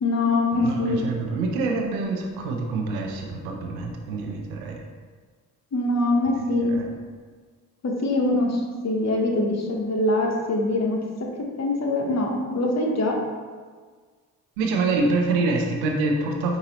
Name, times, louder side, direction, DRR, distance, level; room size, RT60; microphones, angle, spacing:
voice 1, 0.0-1.0 5.7-6.8 7.8-11.0 11.6-13.2, left 2 dB, 40° left, 0 dB, 0.9 m, -23 dB
voice 2, 0.5-4.8 6.3-6.9 14.6-16.6, right 3 dB, 90° right, 1 dB, 0.6 m, -26 dB
4.9 x 2.7 x 2.9 m, 1.5 s
hypercardioid pair, 45°, 41 cm